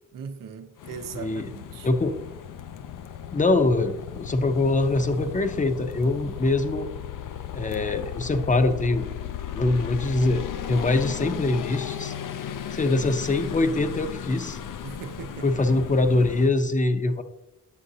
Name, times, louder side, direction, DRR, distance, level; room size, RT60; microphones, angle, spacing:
voice 1, 0.1-1.9 14.8-15.5, right 6 dB, 90° right, 0.7 m, -39 dB
sound 1, 0.8-16.5, left 9 dB, 75° left, 0.5 m, -36 dB
voice 2, 1.1-1.5 1.8-2.2 3.3-6.9 7.5-9.1 9.5-12.1 12.7-14.6 15.4-17.2, left 2 dB, 25° left, 0.6 m, -23 dB
8.2 x 6.4 x 2.7 m
wide cardioid pair, 105°, 32 cm